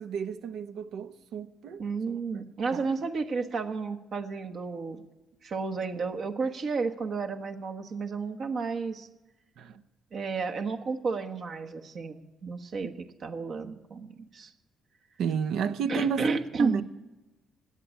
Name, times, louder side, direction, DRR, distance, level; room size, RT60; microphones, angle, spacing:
voice 1, 0.0-2.4 2.7-2.9 9.6-9.8 15.2-16.8, right 6 dB, 80° right, 0.9 m, -32 dB
voice 2, 1.8-5.0 5.4-9.1 10.1-14.5 15.9-16.8, right 4 dB, 55° right, 1.3 m, -32 dB
17.0 x 9.9 x 8.4 m
cardioid pair, 90°, 0 cm